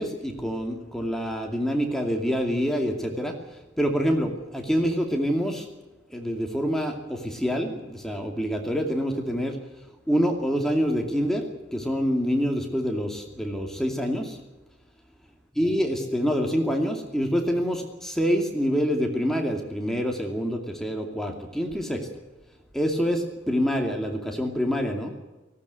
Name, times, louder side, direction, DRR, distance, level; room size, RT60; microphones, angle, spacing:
voice 1, 0.0-3.4 3.8-5.7 6.1-9.6 10.1-11.4 11.7-14.4 15.6-22.1 22.7-25.1, equal, ahead, 2 dB, 2.5 m, -26 dB
18.0 x 16.5 x 9.4 m, 1.1 s
head